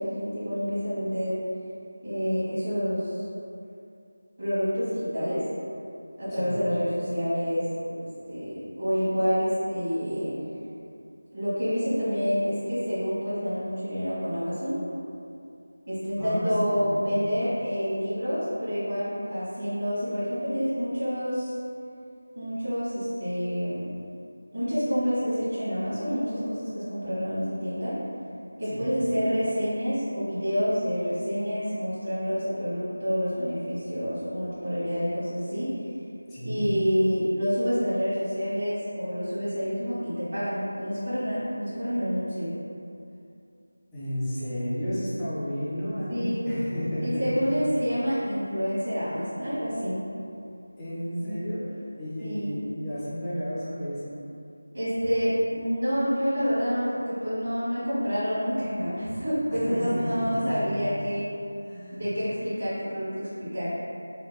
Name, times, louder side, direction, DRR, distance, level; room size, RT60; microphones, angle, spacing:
voice 1, 0.0-1.4 2.0-3.2 4.4-5.4 6.2-10.4 11.3-14.8 15.9-21.5 22.3-23.8 24.5-28.0 28.6-35.7 36.4-42.5 46.1-46.5 47.0-50.0 51.2-51.4 52.2-52.6 54.7-61.3 61.9-63.7, equal, 50° right, -12 dB, 1.3 m, -28 dB
voice 2, 16.2-17.0 28.7-29.0 36.3-36.7 43.9-47.3 50.8-51.6 52.0-54.0 59.7-60.8 61.6-62.0, equal, 5° left, -13 dB, 0.3 m, -32 dB
4.4 x 2.2 x 2.2 m, 2.6 s
figure-of-eight pair, 180°, 0 cm